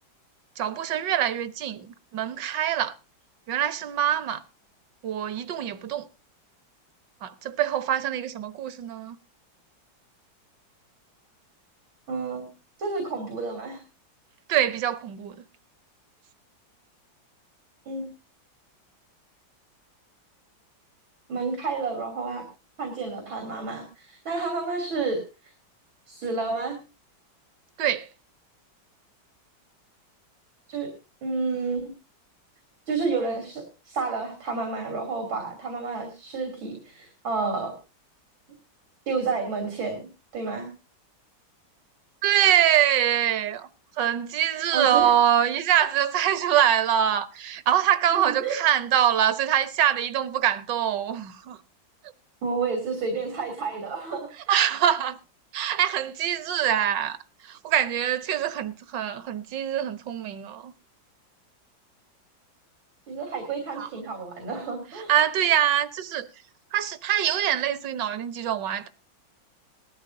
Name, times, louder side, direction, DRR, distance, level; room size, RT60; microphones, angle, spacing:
voice 1, 0.6-2.9 3.5-4.4 5.0-6.1 7.2-9.2 14.5-15.4 27.8-28.1 42.2-43.7 44.0-51.6 54.5-55.2 55.5-60.7 63.8-63.9 64.9-66.3 66.7-68.9, right 10 dB, 70° right, 1.6 m, -24 dB
voice 2, 12.1-12.5 12.8-13.8 17.9-18.1 21.3-22.4 22.8-25.5 26.1-26.8 30.7-30.9 31.2-31.9 32.9-37.8 39.1-40.7 44.7-45.2 48.1-48.6 52.4-54.3 63.1-65.1, right 4 dB, 90° right, 3.8 m, -30 dB
19.5 x 13.5 x 2.7 m
omnidirectional pair, 2.1 m